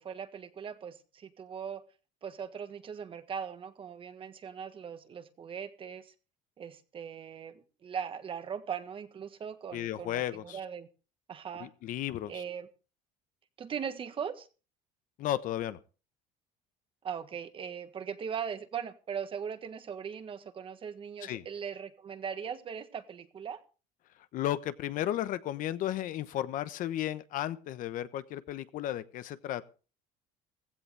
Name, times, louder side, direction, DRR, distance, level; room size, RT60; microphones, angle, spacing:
voice 1, 0.0-1.8 2.2-6.1 6.6-10.9 11.3-11.7 12.3-12.7 13.6-14.5 17.0-23.6, right 7 dB, 30° right, 1.5 m, -39 dB
voice 2, 9.7-10.6 11.6-12.4 15.2-15.8 21.2-21.4 24.3-29.7, left 12 dB, 55° left, 1.1 m, -34 dB
16.0 x 15.5 x 3.4 m
cardioid pair, 130°, 16 cm